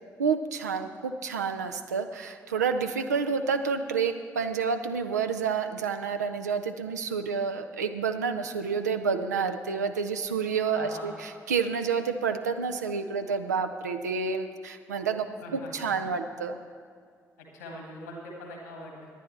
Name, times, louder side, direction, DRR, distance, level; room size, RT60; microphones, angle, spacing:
voice 1, 0.2-16.6, right 5 dB, 85° right, 8 dB, 0.5 m, -29 dB
voice 2, 10.8-11.1 15.4-15.7 17.5-19.1, left 1 dB, 85° left, 0 dB, 1.8 m, -42 dB
18.5 x 10.5 x 3.2 m, 2.2 s
figure-of-eight pair, 40°, 9 cm